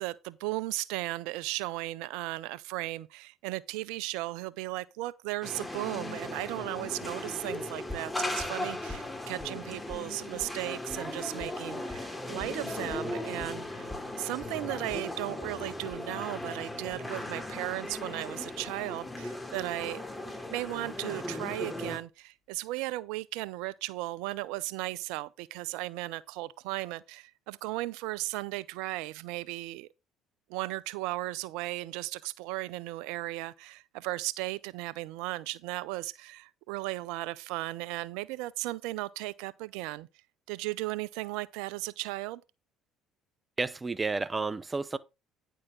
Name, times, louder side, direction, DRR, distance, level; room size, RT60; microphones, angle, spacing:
voice 1, 0.0-13.9 14.2-20.0 20.5-29.9 30.5-40.1 40.5-42.4, right 19 dB, 70° right, 0.5 m, -36 dB
sound 1, 5.4-22.0, left 1 dB, 10° left, 3.2 m, -38 dB
sound 2, 7.9-9.5 9.9-10.1 10.4-10.5 10.9-11.0 11.4-11.5 11.9-12.1 12.4-12.5 12.9-18.9 19.2-19.3, left 2 dB, 5° right, 4.6 m, -48 dB
voice 2, 43.6-45.0, right 3 dB, 25° right, 0.8 m, -31 dB
9.9 x 6.5 x 3.8 m
hypercardioid pair, 60°, 0 cm